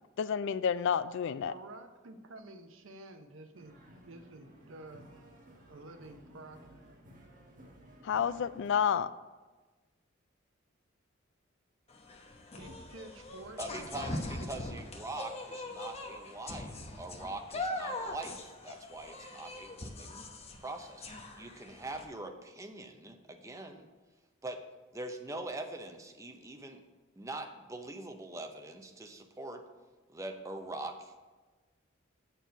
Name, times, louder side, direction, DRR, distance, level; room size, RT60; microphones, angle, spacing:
voice 1, 0.2-1.5 8.0-9.1, left 7 dB, 60° left, 15 dB, 0.3 m, -30 dB
voice 2, 1.4-3.8 4.0-5.1 5.7-6.8 12.5-14.7, right 2 dB, 70° right, 7 dB, 0.8 m, -50 dB
sound 1, 3.5-8.7, right 1 dB, 40° right, 1.7 m, -56 dB
sound 2, 11.9-22.0, left 1 dB, 30° left, 0.9 m, -41 dB
voice 3, 13.6-20.2 20.6-21.0 21.4-23.9 24.4-24.6 24.9-26.8 27.2-29.6 30.1-31.2, right 2 dB, 15° right, 5 dB, 0.6 m, -43 dB
7.7 x 4.6 x 6.9 m, 1.3 s
head